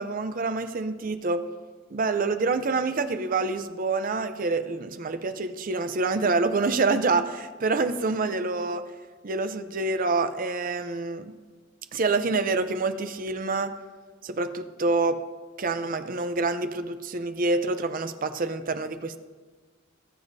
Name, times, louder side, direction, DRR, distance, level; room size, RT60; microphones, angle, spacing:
voice 1, 0.0-1.4 1.9-8.8 9.2-11.3 11.9-13.7 14.2-15.2 15.6-19.2, right 3 dB, 45° right, 10 dB, 0.6 m, -27 dB
19.0 x 7.0 x 2.7 m, 1.4 s
head